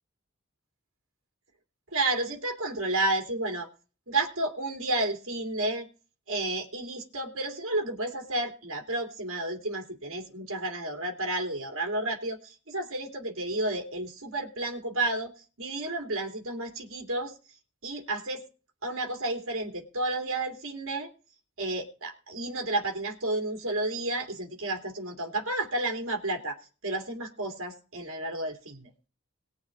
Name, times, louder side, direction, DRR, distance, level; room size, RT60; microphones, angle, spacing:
voice 1, 1.9-3.7 4.1-5.9 6.3-15.3 15.6-17.3 17.8-18.4 18.8-21.1 21.6-28.9, right 2 dB, 75° right, 2 dB, 2.6 m, -31 dB
20.0 x 7.1 x 3.8 m, 0.35 s
head